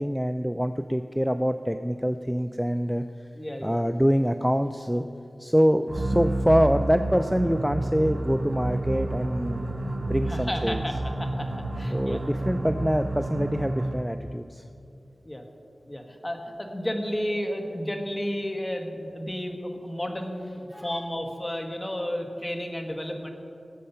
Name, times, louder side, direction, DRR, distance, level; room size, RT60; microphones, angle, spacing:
voice 1, 0.0-3.0 3.6-5.0 5.4-9.6 10.0-10.8 11.9-14.6 20.7-20.9, equal, ahead, 8 dB, 0.4 m, -25 dB
voice 2, 3.3-3.9 10.3-12.2 15.2-15.4 15.9-23.3, equal, 25° left, 3 dB, 1.6 m, -32 dB
sound 1, 5.9-14.1, right 2 dB, 80° right, 2.9 m, -30 dB
19.0 x 7.5 x 5.7 m, 2.6 s
wide cardioid pair, 70°, 0 cm